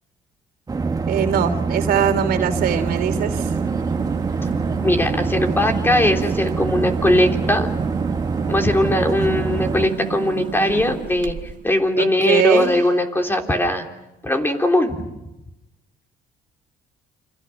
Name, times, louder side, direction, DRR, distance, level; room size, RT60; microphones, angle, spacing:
sound 1, 0.7-9.9, right 4 dB, 20° right, 1.3 m, -25 dB
voice 1, 1.1-3.5 12.0-12.7, right 8 dB, 65° right, 7 dB, 3.3 m, -21 dB
sound 2, 2.5-11.7, right 8 dB, 50° right, 1.5 m, -31 dB
voice 2, 4.8-7.7 8.5-11.3 11.6-13.8 14.2-15.0, left 1 dB, 15° left, 3 dB, 3.5 m, -19 dB
29.5 x 26.5 x 6.0 m, 0.93 s
cardioid pair, 110°, 17 cm